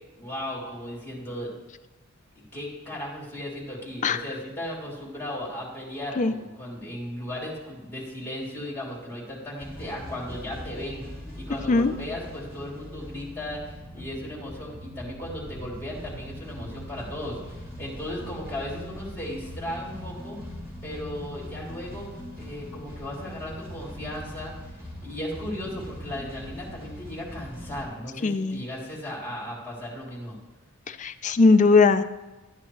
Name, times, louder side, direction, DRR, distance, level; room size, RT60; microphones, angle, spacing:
voice 1, 0.2-1.5 2.3-11.0 11.3-20.4 20.8-22.1 22.4-30.4, left 1 dB, 10° left, -4 dB, 3.2 m, -36 dB
sound 1, 9.6-27.8, equal, 10° right, 2.2 m, -41 dB
voice 2, 28.2-28.6 30.9-32.0, left 3 dB, 35° left, 10 dB, 0.4 m, -19 dB
12.0 x 9.6 x 3.2 m, 1.1 s
head